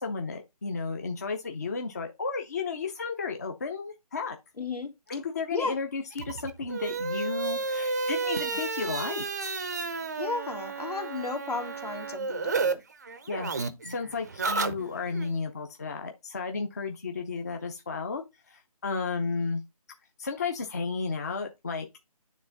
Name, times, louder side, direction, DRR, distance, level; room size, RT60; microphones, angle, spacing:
voice 1, 0.0-4.4 5.1-9.5 13.3-13.5 13.9-19.6 20.2-22.1, left 4 dB, 25° left, 0.6 m, -33 dB
voice 2, 4.6-4.9 5.5-5.8 10.2-12.8, left 3 dB, 75° left, 2.3 m, -33 dB
sound 1, 6.1-12.7 13.0-15.3, right 4 dB, 25° right, 0.5 m, -32 dB
9.3 x 3.5 x 3.9 m
figure-of-eight pair, 165°, 20 cm